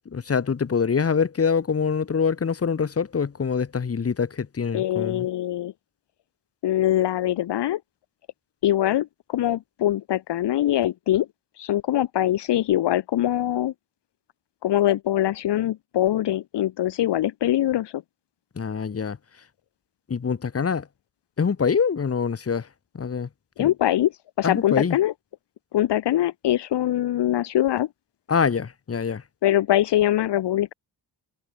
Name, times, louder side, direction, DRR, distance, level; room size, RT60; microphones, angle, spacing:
voice 1, 0.0-5.3 18.5-19.2 20.1-20.9 21.4-22.7 22.9-23.3 23.6-23.7 24.4-25.0 28.3-29.2, left 6 dB, 30° left, 1.5 m, -25 dB
voice 2, 4.7-5.7 6.6-7.8 8.6-11.3 11.6-13.7 14.6-18.0 23.6-24.1 24.4-25.1 25.7-27.9 29.4-30.7, left 13 dB, 70° left, 0.9 m, -23 dB
cardioid pair, 90°, 43 cm